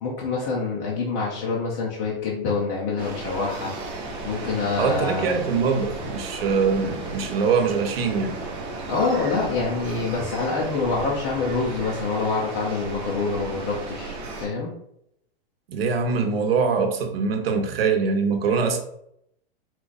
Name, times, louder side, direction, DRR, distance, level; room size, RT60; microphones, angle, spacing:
voice 1, 0.0-3.7 4.2-5.3 8.9-14.7, left 4 dB, 20° left, -4 dB, 0.4 m, -26 dB
sound 1, 3.0-14.5, right 3 dB, 15° right, 0.7 m, -35 dB
voice 2, 4.8-8.4 15.7-18.8, right 5 dB, 70° right, 5 dB, 1.0 m, -23 dB
4.5 x 2.4 x 3.9 m, 0.74 s
supercardioid pair, 170°, 30 cm